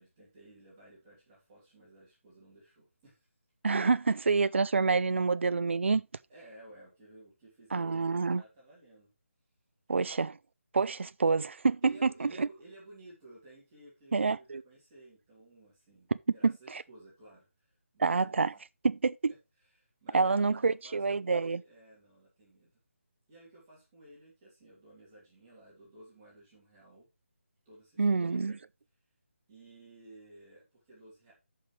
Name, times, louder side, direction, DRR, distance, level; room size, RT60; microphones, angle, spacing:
voice 1, 0.0-3.3 3.7-3.9 6.3-9.1 9.9-10.2 11.8-18.6 19.6-22.8 23.3-27.1 27.6-28.6 29.5-31.3, right 1 dB, 15° right, 2.9 m, -55 dB
voice 2, 3.6-6.0 7.7-8.4 9.9-10.3 10.7-12.5 14.1-14.6 16.4-16.8 18.0-18.5 18.8-19.3 20.1-21.6 28.0-28.6, right 4 dB, 60° right, 0.4 m, -27 dB
13.5 x 5.6 x 3.2 m
figure-of-eight pair, 175°, 7 cm